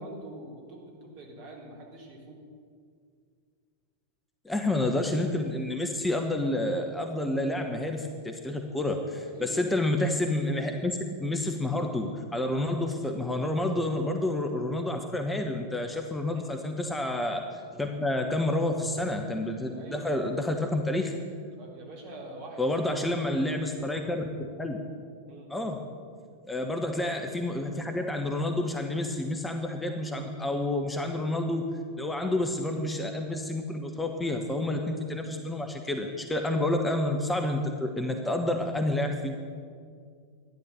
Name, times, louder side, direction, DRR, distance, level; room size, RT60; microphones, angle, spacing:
voice 1, 0.0-2.4 9.4-9.6 16.2-16.5 19.6-20.2 21.6-22.6 25.3-25.5, right 2 dB, 45° right, -1 dB, 4.0 m, -45 dB
voice 2, 4.4-21.1 22.6-24.2 24.6-24.8 25.5-25.8 26.4-31.6 32.0-39.4, left 1 dB, 10° left, 4 dB, 1.2 m, -29 dB
13.5 x 10.5 x 8.6 m, 2.2 s
figure-of-eight pair, 90°, 0 cm